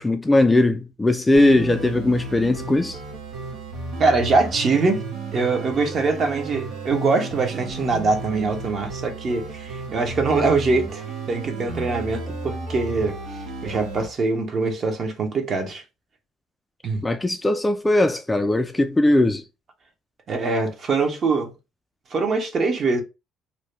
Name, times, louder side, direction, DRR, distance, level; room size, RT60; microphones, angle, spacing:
voice 1, 0.0-3.0 17.0-19.4, left 2 dB, 10° left, 0.3 m, -19 dB
sound 1, 1.3-14.1, right 3 dB, 85° right, 0.9 m, -33 dB
voice 2, 4.0-5.1 5.3-15.8 16.8-17.0 20.3-21.5 22.1-23.0, right 3 dB, 45° right, 0.8 m, -23 dB
2.7 x 2.2 x 3.1 m
cardioid pair, 105°, 0 cm